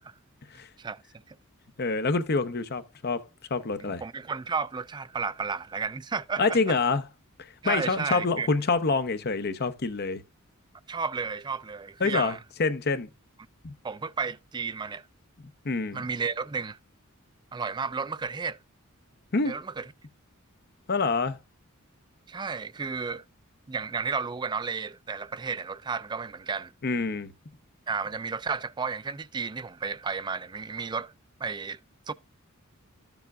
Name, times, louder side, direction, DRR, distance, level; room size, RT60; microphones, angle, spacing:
voice 1, 1.8-3.2 3.5-4.0 6.4-7.0 7.6-10.2 12.0-13.1 13.6-13.7 15.6-16.0 19.3-19.5 20.9-21.4 26.8-27.3, left 4 dB, 50° left, 0.8 m, -26 dB
voice 2, 3.8-6.6 7.6-8.5 10.9-12.4 13.8-15.1 15.9-16.8 17.5-18.6 19.5-19.9 22.3-23.2 23.7-26.7 27.9-31.1 31.4-31.8 32.1-32.2, right 5 dB, 20° right, 0.3 m, -32 dB
13.0 x 7.0 x 2.4 m
head